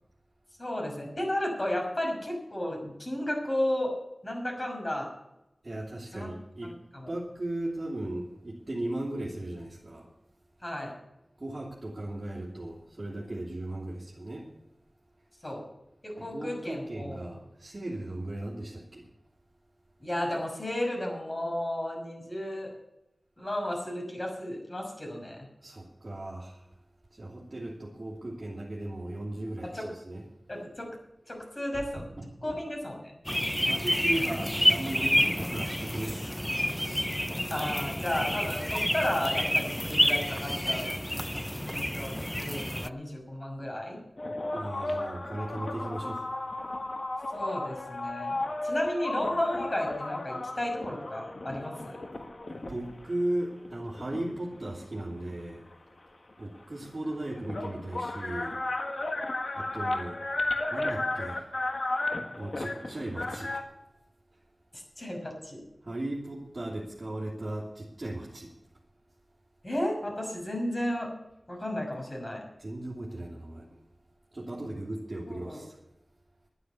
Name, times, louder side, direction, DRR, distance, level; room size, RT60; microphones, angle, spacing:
voice 1, 0.6-3.9 4.2-5.1 6.1-6.3 6.6-7.1 10.6-10.9 15.4-15.6 16.0-17.3 20.0-22.7 23.4-25.4 29.7-29.9 30.5-30.9 31.3-32.0 32.4-33.1 37.5-40.9 41.6-44.0 47.3-48.4 48.6-52.0 64.7-65.6 69.6-71.1 71.5-72.4 75.3-75.6, left 1 dB, 35° left, 1 dB, 5.9 m, -33 dB
voice 2, 5.6-6.7 7.1-10.1 11.4-14.5 16.2-19.1 25.6-26.6 27.1-30.2 30.6-30.7 32.0-32.6 33.3-36.4 44.5-46.3 52.7-55.6 56.4-58.6 59.5-60.2 60.7-61.5 62.4-63.6 65.8-68.5 72.6-73.7 74.3-75.8, right 1 dB, 45° right, -5 dB, 3.0 m, -37 dB
sound 1, 33.3-42.9, equal, 5° left, 0.4 m, -29 dB
sound 2, 44.2-53.0 53.6-55.4 56.6-56.7 56.8-63.6, left 2 dB, 60° left, 1.6 m, -34 dB
11.0 x 10.0 x 8.3 m, 0.91 s
wide cardioid pair, 50°, 0 cm